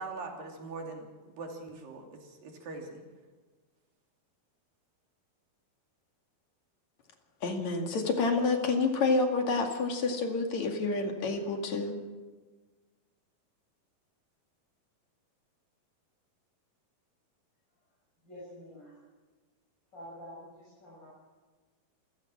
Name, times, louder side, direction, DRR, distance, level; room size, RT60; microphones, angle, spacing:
voice 1, 0.0-3.0, right 3 dB, 65° right, 2 dB, 4.6 m, -42 dB
voice 2, 7.4-12.0, left 3 dB, 50° left, 3 dB, 3.2 m, -28 dB
voice 3, 18.2-18.9 19.9-21.1, equal, 25° left, -7 dB, 8.2 m, -47 dB
27.5 x 16.0 x 6.2 m, 1.3 s
omnidirectional pair, 4.4 m